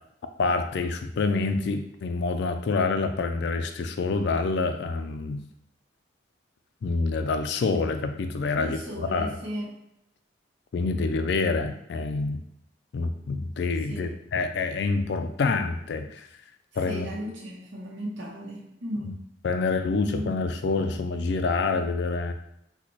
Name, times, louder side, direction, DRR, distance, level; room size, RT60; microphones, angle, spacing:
voice 1, 0.4-5.4 6.8-9.3 10.7-12.4 12.9-16.3 16.8-17.1 19.0-19.1 19.4-22.3, left 3 dB, 60° left, 8 dB, 0.3 m, -27 dB
voice 2, 8.5-9.8 13.9-14.2 16.8-19.2 19.6-20.3, equal, 80° right, -5 dB, 0.8 m, -36 dB
3.9 x 2.2 x 3.0 m, 0.77 s
head